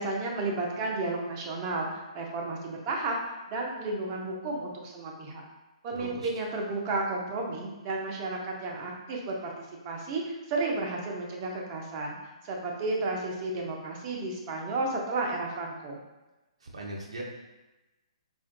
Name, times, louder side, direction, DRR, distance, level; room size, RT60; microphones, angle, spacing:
voice 1, 0.0-1.9 2.1-3.2 3.5-5.4 5.8-9.5 9.8-12.2 12.4-16.0, right 2 dB, 35° right, -1 dB, 0.8 m, -32 dB
voice 2, 5.9-6.3 16.6-17.2, right 1 dB, 75° right, -2 dB, 0.8 m, -39 dB
4.4 x 3.6 x 2.2 m, 1.1 s
hypercardioid pair, 135°, 3 cm